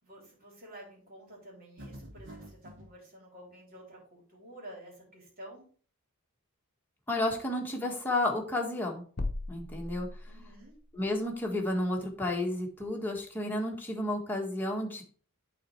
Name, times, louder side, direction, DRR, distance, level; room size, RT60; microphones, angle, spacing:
voice 1, 0.0-5.6 10.3-10.7, right 1 dB, 40° right, -2 dB, 3.8 m, -50 dB
sound 1, 1.8-2.9, equal, 60° right, 2.5 m, -47 dB
voice 2, 7.1-9.0 9.5-10.1 10.9-15.0, left 1 dB, 10° left, -1 dB, 1.7 m, -31 dB
sound 2, 9.2-10.8, left 2 dB, 50° left, 0.9 m, -37 dB
8.8 x 4.3 x 4.6 m, 0.43 s
head